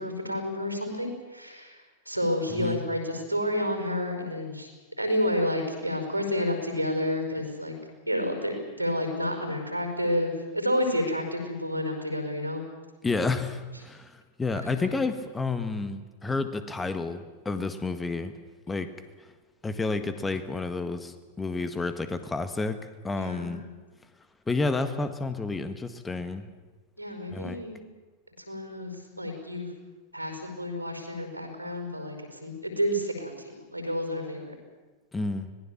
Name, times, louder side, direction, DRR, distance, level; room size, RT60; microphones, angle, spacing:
voice 1, 0.0-4.7 5.0-7.7 8.1-12.6 14.5-14.9 23.2-23.7 27.0-27.8 28.4-29.7 30.1-34.5, equal, 90° left, 4 dB, 5.2 m, -30 dB
voice 2, 2.5-2.8 13.0-18.3 18.7-18.9 19.2-19.3 19.6-22.8 23.0-23.6 24.5-26.5 27.3-27.6 35.1-35.5, left 3 dB, 10° left, 10 dB, 1.7 m, -30 dB
25.5 x 19.5 x 7.4 m, 1.3 s
figure-of-eight pair, 90°, 0 cm